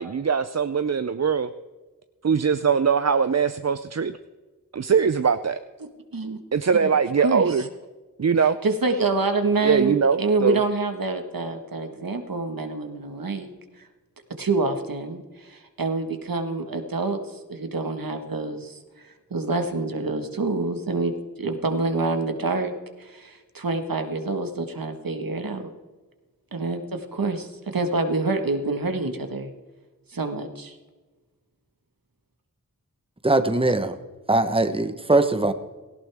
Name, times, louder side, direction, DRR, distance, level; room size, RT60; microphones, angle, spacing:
voice 1, 0.0-1.5 2.2-4.1 4.7-5.6 6.5-7.6 8.2-8.6 9.6-10.6, right 6 dB, 50° right, 11 dB, 0.5 m, -21 dB
voice 2, 7.2-7.7 8.6-13.5 13.8-13.9 14.4-21.1 21.4-22.7 23.0-25.7 26.5-29.5 30.1-30.8, right 3 dB, 80° right, 6 dB, 1.6 m, -27 dB
voice 3, 33.2-34.0 34.3-35.5, right 2 dB, 15° right, 9 dB, 1.0 m, -21 dB
17.5 x 16.5 x 3.5 m, 1.3 s
wide cardioid pair, 60°, 34 cm